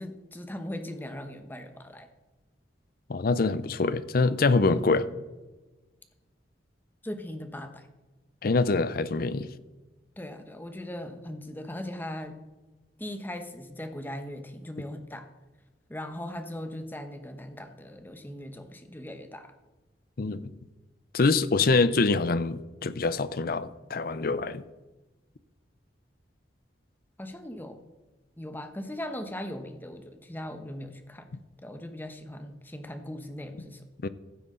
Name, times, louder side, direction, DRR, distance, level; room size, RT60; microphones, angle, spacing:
voice 1, 0.0-2.1 4.7-4.8 7.0-7.9 10.2-12.4 13.0-15.3 15.9-19.5 27.2-27.8 28.4-31.3 31.6-33.8, left 1 dB, 10° left, 0.9 m, -39 dB
voice 2, 3.1-5.1 8.4-9.5 20.2-20.5 21.1-24.6 34.0-34.1, left 3 dB, 55° left, 0.5 m, -25 dB
15.0 x 8.1 x 3.8 m
head